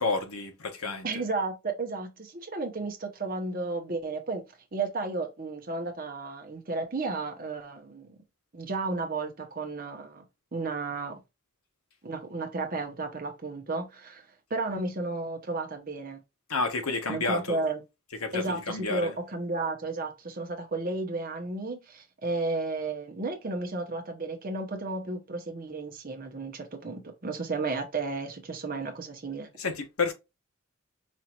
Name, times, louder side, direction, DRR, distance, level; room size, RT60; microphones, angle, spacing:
voice 1, 0.0-1.1 16.5-17.6 18.2-19.1 29.6-30.1, left 3 dB, 85° left, 1.0 m, -30 dB
voice 2, 1.0-4.4 4.7-8.2 8.5-10.2 10.5-11.2 12.0-16.2 17.1-17.8 18.3-29.5, right 3 dB, 40° right, 0.8 m, -33 dB
5.1 x 2.5 x 2.9 m
head